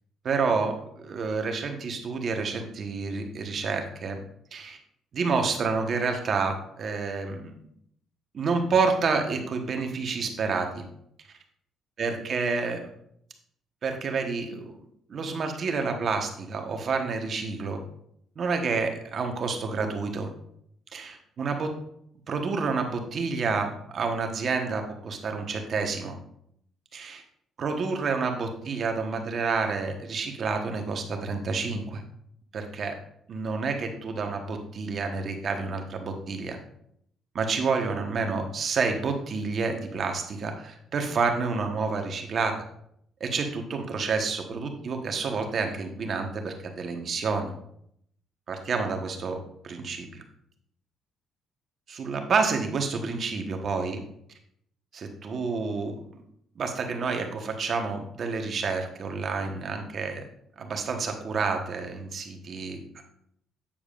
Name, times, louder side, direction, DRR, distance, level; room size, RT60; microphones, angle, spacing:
voice 1, 0.2-4.2 4.5-4.8 5.1-7.5 8.3-10.8 12.0-12.8 13.8-14.8 15.1-17.8 18.4-20.3 20.9-21.7 22.3-26.1 26.9-27.2 27.6-32.0 32.5-33.0 33.3-36.6 37.3-42.5 43.2-47.5 48.5-49.4 49.6-50.2 51.9-54.0 54.9-56.2 56.6-60.3 60.6-62.8, right 4 dB, 55° right, 4 dB, 1.2 m, -29 dB
8.7 x 7.1 x 2.5 m, 0.70 s
cardioid pair, 80°, 0 cm